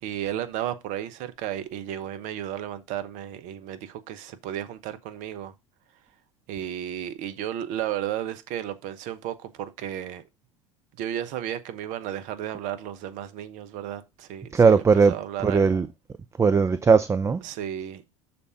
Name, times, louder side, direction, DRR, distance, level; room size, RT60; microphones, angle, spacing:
voice 1, 0.0-5.5 5.9-6.0 6.5-10.2 11.0-15.6 17.4-18.0, right 11 dB, 55° right, 0.9 m, -33 dB
voice 2, 14.5-15.1 15.4-15.9 16.4-17.4, right 5 dB, 20° right, 0.5 m, -18 dB
6.8 x 4.4 x 4.9 m
hypercardioid pair, 75°, 16 cm